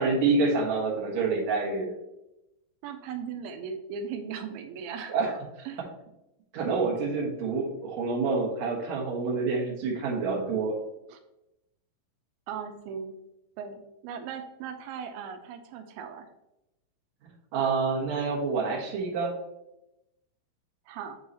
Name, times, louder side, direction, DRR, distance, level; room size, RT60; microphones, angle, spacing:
voice 1, 0.0-1.9 5.1-5.3 6.5-10.7 17.5-19.3, right 4 dB, 60° right, -3 dB, 2.4 m, -27 dB
voice 2, 2.8-5.1 5.7-5.8 11.1-11.2 12.5-13.1 13.6-16.3 20.9-21.2, right 6 dB, 90° right, 6 dB, 2.5 m, -38 dB
8.0 x 4.6 x 2.7 m, 0.89 s
omnidirectional pair, 4.3 m